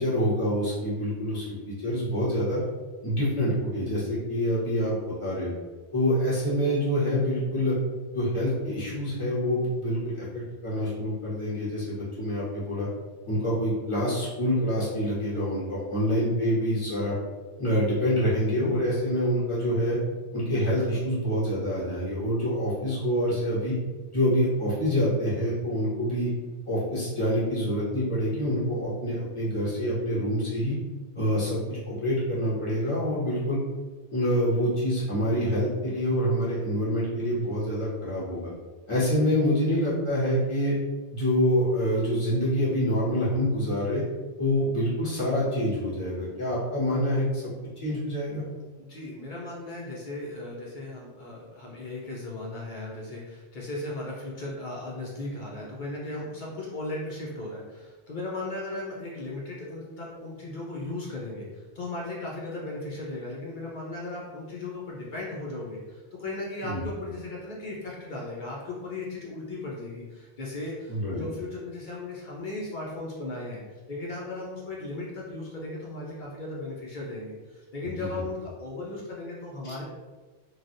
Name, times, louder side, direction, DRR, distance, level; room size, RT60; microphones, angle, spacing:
voice 1, 0.0-2.6 3.0-4.9 5.2-5.5 5.9-7.7 8.1-12.9 13.2-17.1 17.6-20.0 20.3-23.7 24.1-26.3 26.7-30.7 31.1-33.6 34.1-38.5 38.9-40.7 41.1-44.0 44.4-47.5 47.8-48.4 66.6-66.8 70.9-71.2 77.8-78.2, equal, 25° left, -9 dB, 1.1 m, -26 dB
voice 2, 48.8-79.8, left 2 dB, 55° left, -4 dB, 0.6 m, -36 dB
3.1 x 2.2 x 2.6 m, 1.3 s
omnidirectional pair, 1.2 m